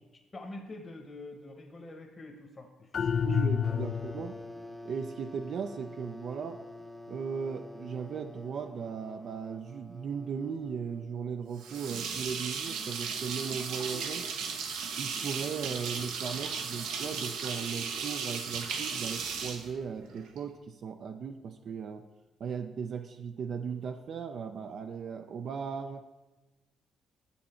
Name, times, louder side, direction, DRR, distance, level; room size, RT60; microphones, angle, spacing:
voice 1, 0.1-3.4 3.7-3.8, left 2 dB, 30° left, 2 dB, 1.0 m, -46 dB
sound 1, 2.9-4.4, left 7 dB, 55° left, 0.4 m, -29 dB
voice 2, 3.2-4.4 4.8-6.6 7.1-14.6 15.0-22.1 22.4-26.0, right 6 dB, 60° right, 6 dB, 0.4 m, -37 dB
sound 2, 3.6-12.0, left 1 dB, ahead, 0.6 m, -48 dB
sound 3, 11.6-20.4, right 6 dB, 90° right, 0.8 m, -36 dB
7.2 x 7.1 x 4.3 m, 1.1 s
cardioid pair, 90°, 0 cm